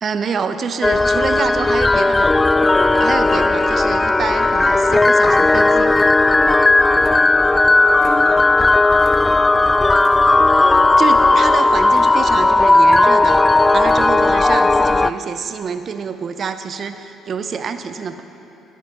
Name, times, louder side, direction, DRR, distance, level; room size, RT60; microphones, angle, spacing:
voice 1, 0.0-2.3 2.9-5.9 11.0-13.4 13.7-18.2, right 6 dB, 50° right, 10 dB, 0.6 m, -26 dB
sound 1, 0.8-15.1, left 2 dB, 20° left, 0.3 m, -14 dB
sound 2, 4.8-5.0 5.4-5.6 5.9-6.6 6.9-7.6 8.0-10.6 10.9-11.5 11.9-12.5 12.8-13.4 13.8-14.3 14.8-14.9, right 1 dB, 10° right, 2.0 m, -43 dB
22.5 x 10.0 x 3.1 m, 3.0 s
hypercardioid pair, 50°, 0 cm